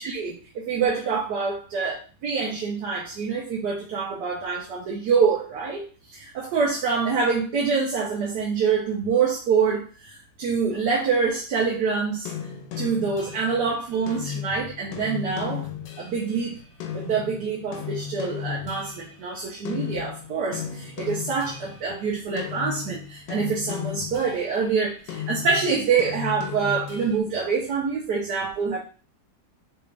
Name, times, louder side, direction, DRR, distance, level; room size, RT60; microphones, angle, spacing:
voice 1, 0.0-5.8 6.1-12.3 12.8-15.7 16.0-16.6 16.9-28.8, right 5 dB, 70° right, -2 dB, 1.4 m, -26 dB
sound 1, 12.3-19.4 19.7-22.0 22.4-24.7 25.1-27.2, left 9 dB, 80° left, 1.3 m, -35 dB
5.0 x 2.5 x 3.2 m, 0.39 s
omnidirectional pair, 1.9 m